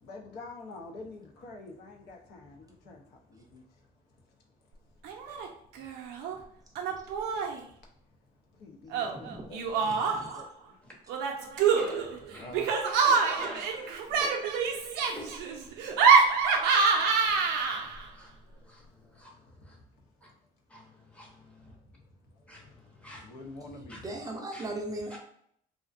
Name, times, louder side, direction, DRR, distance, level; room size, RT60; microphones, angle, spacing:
voice 1, 0.0-3.6 8.6-10.5 12.4-12.7 23.2-24.1, left 2 dB, 70° left, 0 dB, 0.6 m, -46 dB
Laughter, 5.0-5.5 5.7-6.4 6.8-7.6 8.9-10.4 11.1-18.0, right 5 dB, 90° right, 0.5 m, -26 dB
voice 2, 9.0-10.4 23.7-25.2, right 1 dB, 20° right, 1 dB, 0.4 m, -39 dB
voice 3, 11.6-12.7 13.0-13.6 14.1-19.8 20.2-20.3 20.7-21.8 22.5-23.6 23.9-24.0 24.5-24.7 25.1-25.2, left 1 dB, 5° left, -2 dB, 0.7 m, -48 dB
2.5 x 2.1 x 2.4 m, 0.68 s
cardioid pair, 110°, 17 cm